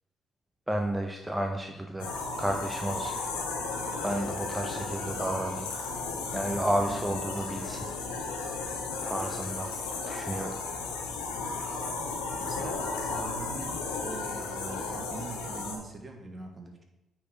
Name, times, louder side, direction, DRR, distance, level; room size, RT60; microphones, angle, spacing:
voice 1, 0.7-3.1 4.0-5.7 6.3-7.9 9.0-9.7 10.1-10.6, right 1 dB, 10° right, 3 dB, 0.8 m, -32 dB
sound 1, 2.0-15.8, left 3 dB, 90° left, 1.2 m, -34 dB
voice 2, 6.9-7.2 12.4-16.8, right 3 dB, 35° right, 3 dB, 1.8 m, -42 dB
8.9 x 4.6 x 4.7 m, 0.94 s
hypercardioid pair, 50°, 0 cm